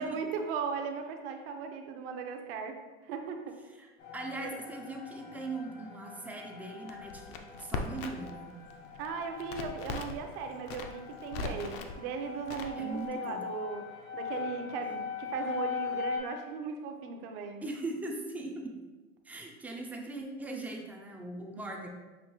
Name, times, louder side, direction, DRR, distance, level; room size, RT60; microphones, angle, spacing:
voice 1, 0.0-2.8 3.1-3.6 4.4-4.6 9.0-13.8 14.1-17.6, right 5 dB, 60° right, 5 dB, 0.7 m, -37 dB
voice 2, 3.8-8.5 12.8-13.4 17.6-18.7 19.2-21.9, right 2 dB, 5° right, 1 dB, 0.3 m, -40 dB
sound 1, 4.0-16.2, left 7 dB, 75° left, 1.3 m, -41 dB
Crackle, 6.9-8.4 8.6-10.2 10.6-11.9 12.5-13.1, left 4 dB, 55° left, 0.6 m, -39 dB
6.3 x 2.6 x 2.9 m, 1.3 s
supercardioid pair, 130°, 33 cm